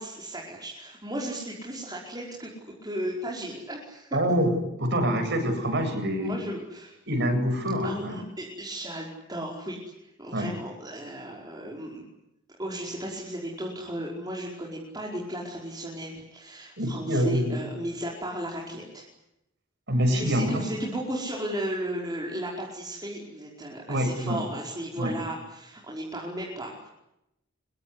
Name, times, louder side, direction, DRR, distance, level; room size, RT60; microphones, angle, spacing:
voice 1, 0.0-2.5 2.8-4.2 6.2-7.0 7.8-12.1 12.6-19.1 20.1-26.9, right 1 dB, 20° right, -3 dB, 5.2 m, -35 dB
voice 2, 4.1-4.5 4.8-6.4 7.1-8.2 10.3-10.5 16.8-17.6 19.9-20.5 23.9-24.4 25.0-25.1, equal, 60° right, 6 dB, 8.0 m, -25 dB
26.0 x 23.0 x 9.9 m, 0.85 s
head